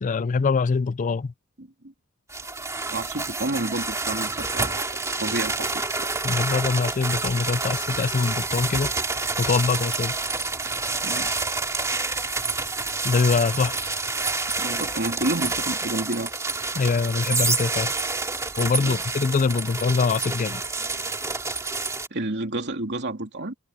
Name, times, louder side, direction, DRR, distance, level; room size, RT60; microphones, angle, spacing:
voice 1, 0.0-1.3 6.2-8.9 9.4-10.1 13.0-13.8 16.7-17.9 18.6-20.6, left 4 dB, 35° left, 0.4 m, -23 dB
voice 2, 1.6-1.9 2.9-4.8 5.2-6.1 11.0-11.3 14.6-16.3 18.8-19.1 22.1-23.5, right 2 dB, 50° right, 3.1 m, -30 dB
sound 1, 2.3-22.1, right 3 dB, 15° right, 2.4 m, -28 dB
head